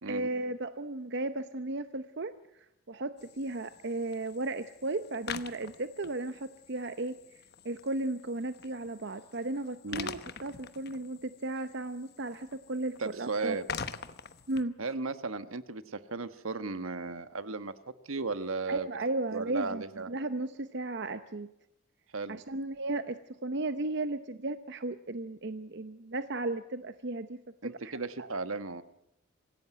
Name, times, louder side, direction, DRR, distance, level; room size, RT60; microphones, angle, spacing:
voice 1, 0.1-7.2 7.6-13.6 14.5-14.7 18.7-21.5 22.3-27.9 28.2-28.3, right 2 dB, 55° right, 11 dB, 0.8 m, -35 dB
sound 1, 3.2-14.6, left 6 dB, 50° left, 1.0 m, -45 dB
voice 2, 13.0-13.7 14.8-17.7 18.0-18.9 19.3-20.1 22.1-22.4 27.6-28.8, right 3 dB, 90° right, 12 dB, 1.3 m, -35 dB
26.0 x 16.0 x 9.2 m, 0.81 s
head